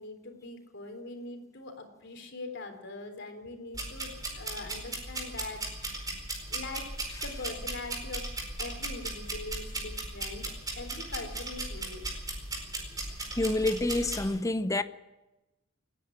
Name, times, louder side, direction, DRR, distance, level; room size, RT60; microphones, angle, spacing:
voice 1, 0.0-6.1 6.5-6.9 7.2-8.3 8.6-12.0, left 2 dB, 60° left, 3.7 m, -42 dB
sound 1, 3.7-14.2, right 2 dB, 20° right, 4.5 m, -37 dB
voice 2, 13.3-14.8, left 2 dB, 15° left, 0.8 m, -28 dB
28.5 x 10.0 x 8.9 m
head